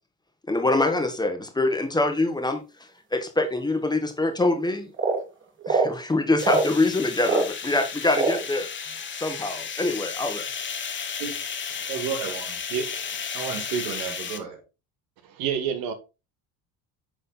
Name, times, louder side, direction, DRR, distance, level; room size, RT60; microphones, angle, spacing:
voice 1, 0.5-2.6 3.1-4.9 5.7-10.4, left 2 dB, 10° left, 1.5 m, -25 dB
sound 1, 4.9-5.2 5.6-6.0 6.4-6.7 7.2-7.5 8.1-8.5, right 3 dB, 30° right, 2.6 m, -23 dB
sound 2, 6.4-14.4, left 6 dB, 30° left, 1.3 m, -34 dB
voice 2, 11.9-12.6 13.3-14.6, right 7 dB, 85° right, 2.6 m, -32 dB
voice 3, 12.7-13.2 15.4-15.9, right 8 dB, 70° right, 1.5 m, -29 dB
9.9 x 4.0 x 3.9 m
cardioid pair, 105°, 37 cm